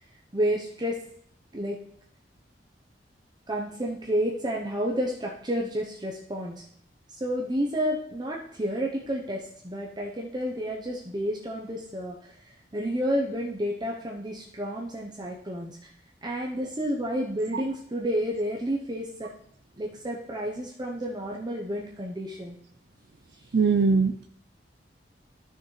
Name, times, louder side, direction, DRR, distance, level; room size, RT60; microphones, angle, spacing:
voice 1, 0.3-1.0 1.5-1.8 3.5-6.6 7.1-15.8 16.2-19.3 19.8-22.6, equal, 25° right, -2 dB, 0.8 m, -30 dB
voice 2, 23.5-24.3, right 4 dB, 65° right, 7 dB, 0.5 m, -21 dB
12.5 x 6.3 x 3.2 m, 0.67 s
head